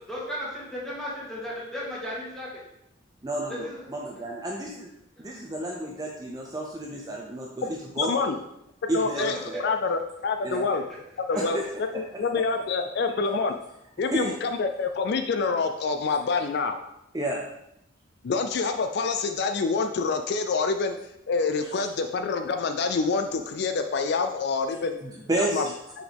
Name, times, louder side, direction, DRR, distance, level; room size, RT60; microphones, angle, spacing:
voice 1, 0.0-2.5 3.5-3.8 9.1-9.6 11.3-11.5, equal, ahead, -7 dB, 1.8 m, -35 dB
voice 2, 3.2-4.9 5.2-8.4 8.9-9.6 10.4-10.7 11.4-11.6 11.9-12.0 14.1-14.3 17.1-17.4 25.0-25.6, right 1 dB, 20° right, -1 dB, 0.5 m, -31 dB
voice 3, 8.0-8.4 8.9-10.8 11.3-13.5 14.0-16.8 18.2-21.0 21.3-25.0 25.4-25.6, left 4 dB, 55° left, 7 dB, 0.3 m, -27 dB
6.1 x 4.9 x 3.4 m, 0.82 s
head